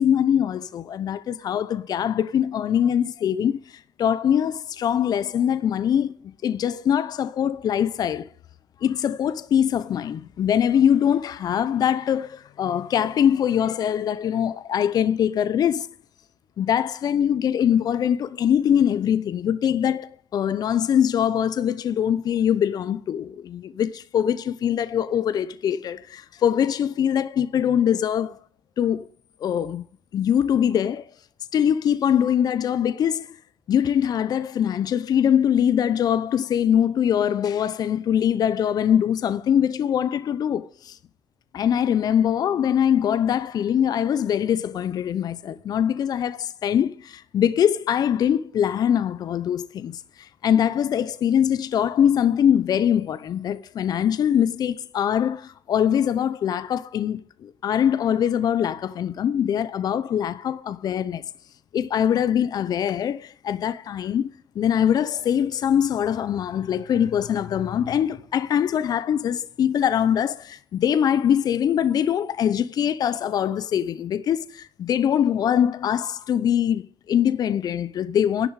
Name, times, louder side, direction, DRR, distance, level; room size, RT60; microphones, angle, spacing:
voice 1, 0.0-6.1 6.4-8.3 8.8-15.9 16.6-28.4 28.8-29.1 29.4-29.8 30.1-31.1 31.5-33.4 33.7-41.0 41.5-61.2 61.7-78.5, left 9 dB, 60° left, 0.7 m, -23 dB
11.5 x 6.9 x 8.2 m
cardioid pair, 95°, 7 cm